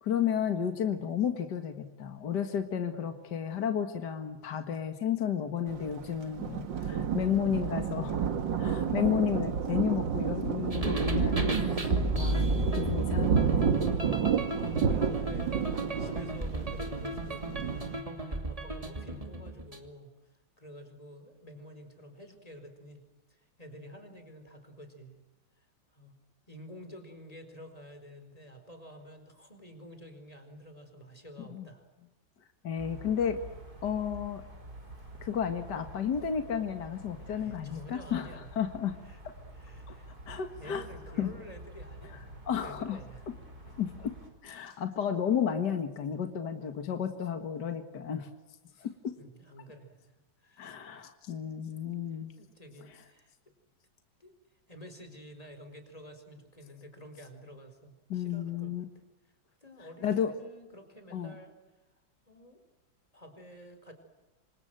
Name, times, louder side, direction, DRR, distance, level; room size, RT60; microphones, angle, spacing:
voice 1, 0.0-8.2 8.6-13.9 31.4-31.7 32.6-33.4 33.8-34.4 35.2-39.0 39.2-39.3 39.9-40.0 40.3-40.9 41.2-41.3 42.5-43.0 43.8-44.1 44.4-48.3 48.8-49.2 50.6-52.3 52.9-53.0 58.1-58.8 60.0-60.3 61.1-61.4, left 8 dB, 65° left, 7 dB, 2.3 m, -32 dB
Thunder, 5.7-18.0, right 7 dB, 75° right, 2.2 m, -30 dB
sound 1, 10.7-19.9, right 1 dB, 20° right, 2.7 m, -34 dB
voice 2, 14.9-17.9 18.3-20.1 20.6-25.2 25.9-26.2 26.5-31.8 37.2-38.5 39.0-39.2 39.5-43.2 44.7-44.8 48.7-48.9 49.2-51.1 52.3-53.3 54.2-54.3 54.7-58.7 59.6-61.6 62.3-62.6 63.1-63.9, equal, 20° left, 7 dB, 4.7 m, -50 dB
sound 2, 32.8-44.3, right 1 dB, 50° right, 6.0 m, -48 dB
27.0 x 26.5 x 7.8 m, 1.1 s
omnidirectional pair, 2.0 m